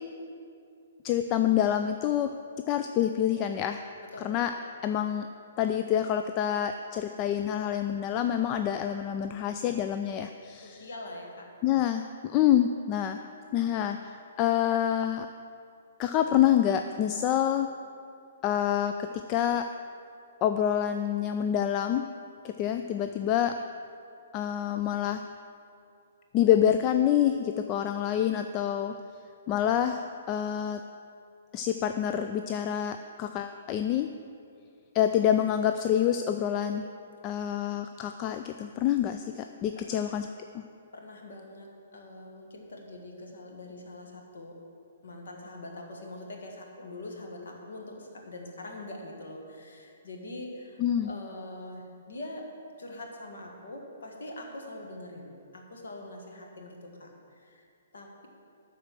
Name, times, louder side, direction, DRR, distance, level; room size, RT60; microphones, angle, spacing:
voice 1, 1.0-2.3 2.7-3.8 4.2-4.5 4.8-5.3 5.6-10.9 11.6-13.2 13.5-15.3 16.0-17.7 18.4-19.7 20.4-22.0 22.4-23.6 24.3-25.2 26.3-28.9 29.5-30.8 31.5-34.1 34.9-36.8 37.2-40.3 40.5-40.6 50.8-51.1, left 10 dB, 25° left, 7 dB, 0.3 m, -27 dB
voice 2, 4.0-4.3 10.6-11.5 39.7-40.1 40.9-44.6 45.0-52.5 52.8-57.7 57.9-58.3, left 1 dB, 60° left, 1 dB, 1.6 m, -43 dB
12.5 x 4.4 x 7.4 m, 2.4 s
figure-of-eight pair, 120°, 0 cm